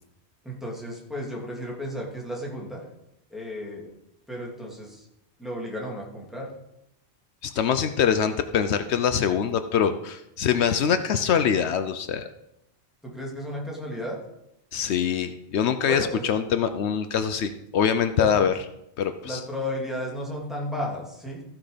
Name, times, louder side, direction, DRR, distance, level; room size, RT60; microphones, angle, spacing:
voice 1, 0.4-2.8 3.3-3.9 4.3-5.1 5.4-6.5 13.0-14.2 15.9-16.2 18.1-18.4 19.2-21.4, equal, ahead, -4 dB, 2.5 m, -33 dB
voice 2, 7.4-12.3 14.7-18.5 19.0-19.4, left 8 dB, 80° left, 9 dB, 0.9 m, -24 dB
14.5 x 6.0 x 5.1 m, 0.82 s
omnidirectional pair, 1.1 m